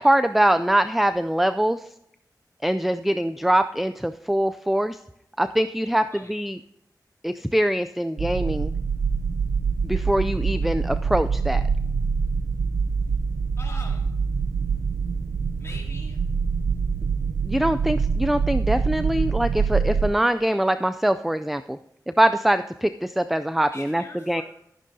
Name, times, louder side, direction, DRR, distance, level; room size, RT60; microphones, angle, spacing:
voice 1, 0.0-1.8 2.6-5.0 5.4-6.6 7.2-8.7 9.8-11.6 17.4-21.8 22.2-24.4, right 1 dB, ahead, 10 dB, 0.4 m, -23 dB
sound 1, 8.2-20.1, right 5 dB, 75° right, 0.4 m, -25 dB
voice 2, 13.6-14.1 15.6-16.2 23.7-24.4, left 2 dB, 40° left, -3 dB, 2.5 m, -42 dB
13.5 x 11.5 x 2.7 m, 0.81 s
wide cardioid pair, 85°, 7 cm